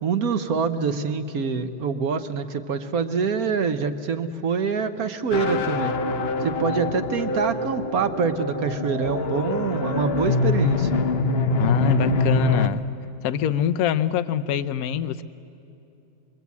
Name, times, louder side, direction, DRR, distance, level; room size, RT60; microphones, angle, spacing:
voice 1, 0.0-6.0 6.4-11.0, right 5 dB, 55° right, 9 dB, 1.1 m, -25 dB
sound 1, 5.3-12.7, left 3 dB, 80° left, 0.5 m, -24 dB
voice 2, 11.6-12.9 13.2-15.2, left 9 dB, 65° left, 12 dB, 0.9 m, -24 dB
25.0 x 23.0 x 8.3 m, 2.8 s
omnidirectional pair, 2.3 m